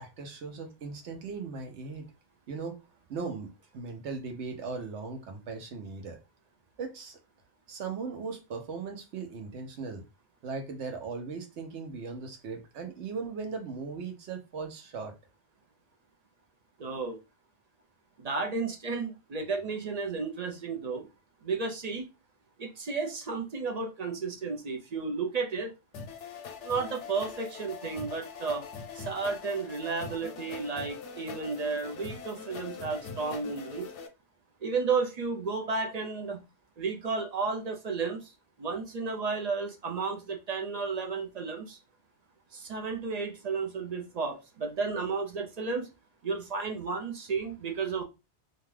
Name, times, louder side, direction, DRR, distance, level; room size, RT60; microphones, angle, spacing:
voice 1, 0.0-2.0 2.5-2.8 3.1-6.2 6.8-7.2 7.7-10.0 10.4-15.1, right 4 dB, 80° right, 1.0 m, -38 dB
voice 2, 16.8-17.2 18.2-21.1 21.4-22.1 22.6-25.7 26.6-28.7 28.9-33.9 34.6-36.4 36.8-38.3 38.6-41.8 42.5-45.9 46.2-48.0, right 4 dB, 50° right, 0.5 m, -33 dB
sound 1, 25.9-34.1, left 5 dB, 85° left, 0.9 m, -42 dB
2.6 x 2.3 x 3.2 m
omnidirectional pair, 1.2 m